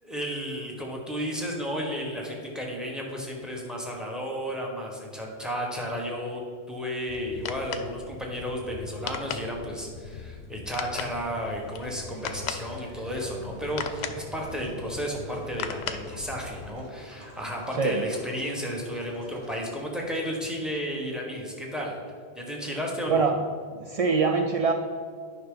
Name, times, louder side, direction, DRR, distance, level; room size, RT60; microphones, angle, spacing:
voice 1, 0.0-6.4 6.7-22.0 22.3-23.3, equal, ahead, -1 dB, 1.3 m, -33 dB
sound 1, 7.1-16.7, left 7 dB, 75° left, 0.8 m, -38 dB
sound 2, 12.0-19.6, equal, 85° right, 1.8 m, -50 dB
voice 2, 23.8-24.7, right 4 dB, 65° right, 4 dB, 0.3 m, -23 dB
9.7 x 5.7 x 3.9 m, 2.1 s
omnidirectional pair, 1.1 m